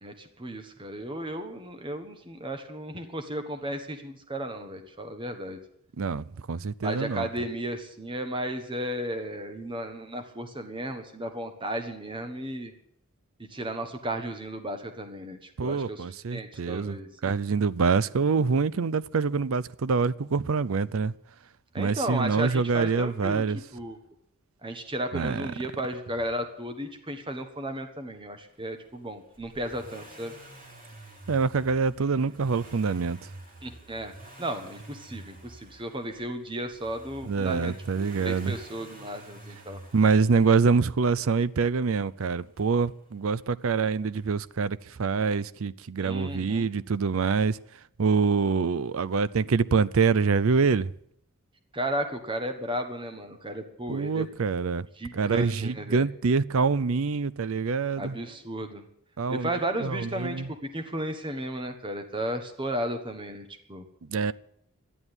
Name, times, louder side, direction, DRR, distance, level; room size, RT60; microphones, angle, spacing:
voice 1, 0.0-5.6 6.8-12.7 13.5-16.0 16.3-17.1 21.7-23.4 23.7-24.0 24.6-30.3 32.2-32.3 33.6-34.1 34.4-37.7 38.0-39.8 46.0-46.7 51.7-54.3 55.0-56.1 58.0-58.8 59.3-60.4 60.7-63.8, right 1 dB, 20° right, 1.4 m, -34 dB
voice 2, 6.0-7.3 15.6-17.0 17.2-21.1 21.8-23.6 25.1-25.5 31.3-33.3 37.2-38.6 39.9-47.6 48.0-50.9 53.9-54.9 55.1-58.2 59.2-59.5 59.8-60.5 64.1-64.3, right 5 dB, 65° right, 0.5 m, -25 dB
Accelerating revving vroom, 29.3-41.3 42.6-42.7, right 1 dB, 40° right, 3.5 m, -48 dB
12.5 x 11.0 x 9.8 m
head